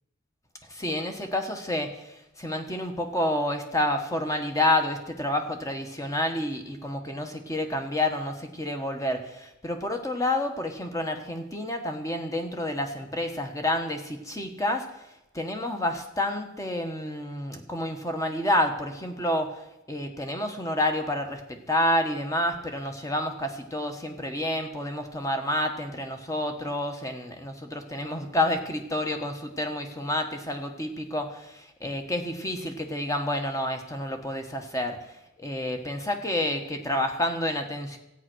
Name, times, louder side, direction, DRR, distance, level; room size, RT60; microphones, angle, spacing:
voice 1, 0.7-15.1 15.3-35.0 35.4-38.0, left 1 dB, 15° left, 5 dB, 1.3 m, -29 dB
13.5 x 9.1 x 6.3 m, 0.91 s
head